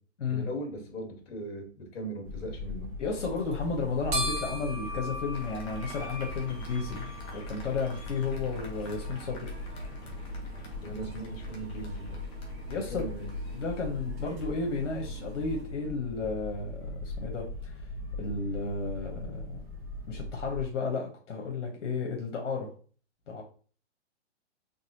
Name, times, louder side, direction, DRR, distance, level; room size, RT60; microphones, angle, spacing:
voice 1, 0.3-2.9 10.8-12.2 12.9-13.3, right 1 dB, 55° left, 2 dB, 1.8 m, -39 dB
sound 1, 2.2-20.6, left 2 dB, 10° right, 1.3 m, -40 dB
voice 2, 3.0-9.5 12.7-13.1 13.5-17.8 18.2-19.6 20.1-22.7 23.3-23.4, left 4 dB, 80° left, 0 dB, 1.2 m, -33 dB
sound 2, 3.1-15.6, right 1 dB, 55° right, 1.6 m, -42 dB
Applause, 5.3-13.7, left 1 dB, 15° left, 0.6 m, -50 dB
4.1 x 3.4 x 2.9 m, 0.41 s
hypercardioid pair, 145°, 36 cm